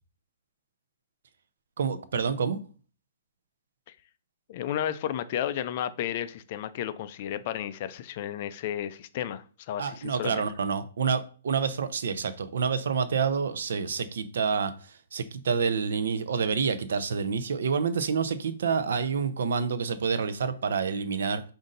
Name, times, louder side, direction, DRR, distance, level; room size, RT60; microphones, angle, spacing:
voice 1, 1.8-2.6 9.8-21.4, right 6 dB, 70° right, 0.5 m, -28 dB
voice 2, 4.5-10.4, left 10 dB, 40° left, 0.3 m, -33 dB
5.1 x 2.6 x 3.9 m
hypercardioid pair, 160°, 0 cm